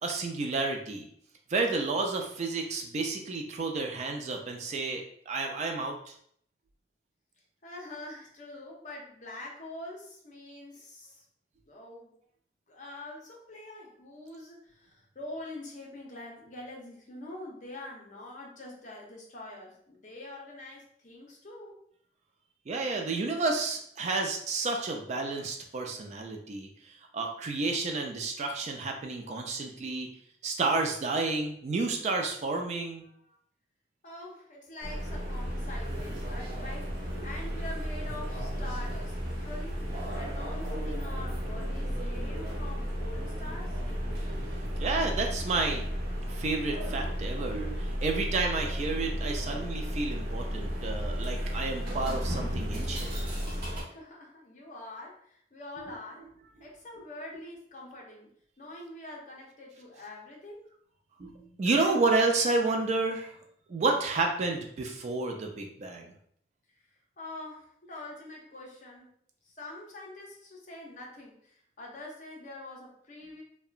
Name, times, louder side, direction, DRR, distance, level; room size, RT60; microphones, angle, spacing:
voice 1, 0.0-1.0 1.5-6.1 22.7-30.1 30.4-33.1 44.8-45.8 46.3-53.2 61.2-63.4 63.7-66.1, right 3 dB, 40° right, 3 dB, 0.3 m, -30 dB
voice 2, 7.6-11.2 11.7-12.1 12.7-21.8 34.0-43.8 53.8-56.3 56.6-58.3 58.6-60.7 67.2-69.1 69.4-73.4, left 1 dB, 45° left, -2 dB, 0.7 m, -45 dB
sound 1, 34.8-53.8, equal, 55° right, 0.8 m, -33 dB
2.8 x 2.2 x 2.3 m, 0.65 s
head